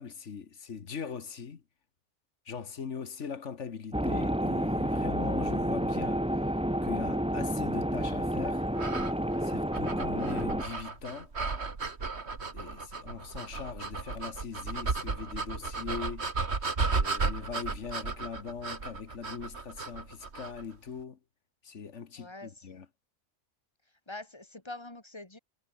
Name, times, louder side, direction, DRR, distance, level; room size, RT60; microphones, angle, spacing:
voice 1, 0.0-1.6 2.4-6.2 6.8-8.7 9.4-11.3 12.5-16.3 16.9-21.2 21.6-22.8, left 6 dB, 70° left, 1.7 m, -40 dB
sound 1, 3.9-10.6, equal, 5° right, 1.8 m, -30 dB
sound 2, 8.7-20.6, right 4 dB, 60° right, 2.5 m, -34 dB
voice 2, 22.2-22.7 24.1-25.4, left 2 dB, 20° left, 3.3 m, -44 dB
omnidirectional pair, 1.3 m